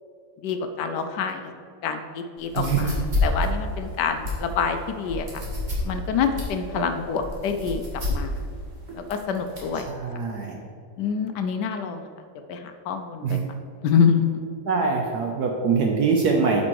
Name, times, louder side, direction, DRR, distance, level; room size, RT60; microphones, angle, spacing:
voice 1, 0.4-1.5 1.8-2.9 3.2-5.3 5.8-7.8 8.1-8.4 8.9-9.9 11.0-12.1 12.5-13.4 13.8-14.4, left 6 dB, 75° left, 7 dB, 1.0 m, -26 dB
sound 1, 2.4-9.8, left 2 dB, 25° right, 1.4 m, -30 dB
voice 2, 2.5-2.9 6.7-6.9 9.7-10.5 13.2-13.5 14.6-16.6, right 5 dB, 65° right, 1 dB, 1.0 m, -24 dB
8.5 x 5.3 x 4.7 m, 2.3 s
omnidirectional pair, 2.3 m